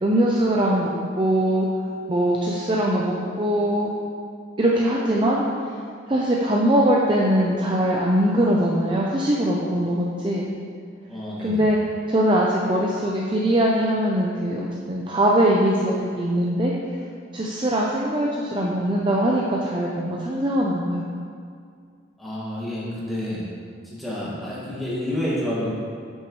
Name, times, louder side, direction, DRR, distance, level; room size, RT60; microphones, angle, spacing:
voice 1, 0.0-1.7 2.1-3.9 4.6-5.4 6.1-10.5 11.4-11.8 12.1-16.7 17.3-21.0, right 1 dB, 25° right, -3 dB, 0.5 m, -21 dB
voice 2, 11.1-11.7 22.2-23.4 24.0-25.7, left 1 dB, ahead, -9 dB, 1.9 m, -29 dB
10.0 x 6.2 x 3.1 m, 2.2 s
head